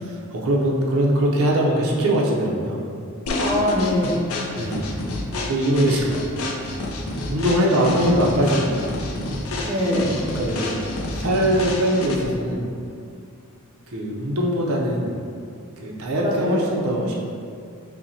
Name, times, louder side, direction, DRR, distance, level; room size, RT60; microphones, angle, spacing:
voice 1, 0.1-2.8 4.6-4.9 5.5-6.1 7.3-9.0 10.3-10.8 11.1-12.7 13.9-15.1 15.8-17.1, equal, 75° right, -2 dB, 0.6 m, -22 dB
sound 1, 3.3-12.4, left 1 dB, 70° left, 0.4 m, -29 dB
voice 2, 3.4-4.2 9.6-10.1 16.2-16.9, left 1 dB, 25° right, -5 dB, 0.5 m, -23 dB
5.6 x 2.1 x 2.7 m, 2.3 s
head